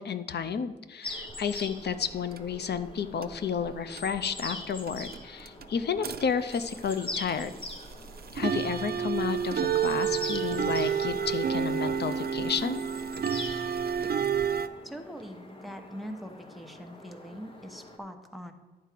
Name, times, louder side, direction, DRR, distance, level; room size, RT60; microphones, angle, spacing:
voice 1, 0.0-7.5 8.3-12.8, left 7 dB, 80° left, 11 dB, 0.5 m, -31 dB
sound 1, 1.0-18.0, left 1 dB, 30° left, 1.1 m, -44 dB
sound 2, 1.1-2.9 3.2-3.7 4.0-14.7, right 8 dB, 65° right, 0.5 m, -30 dB
voice 2, 14.8-18.5, equal, ahead, 6 dB, 0.8 m, -42 dB
10.5 x 4.6 x 7.4 m, 1.2 s
wide cardioid pair, 155°, 17 cm